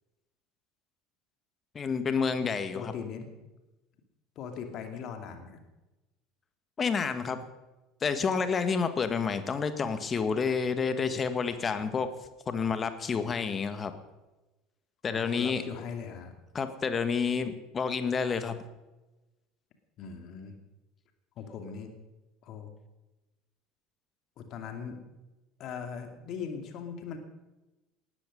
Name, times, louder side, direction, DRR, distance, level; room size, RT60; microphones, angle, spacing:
voice 1, 1.7-2.9 6.8-7.4 8.0-12.1 12.5-13.9 15.0-15.6 16.5-18.6, left 5 dB, 30° left, 10 dB, 1.8 m, -29 dB
voice 2, 2.7-3.3 4.4-5.6 15.1-16.4 20.0-20.6 21.4-21.9 22.4-22.7 24.4-25.0 25.6-27.2, left 6 dB, 50° left, 6 dB, 2.6 m, -40 dB
19.5 x 13.0 x 5.3 m, 1.0 s
figure-of-eight pair, 65°, 0 cm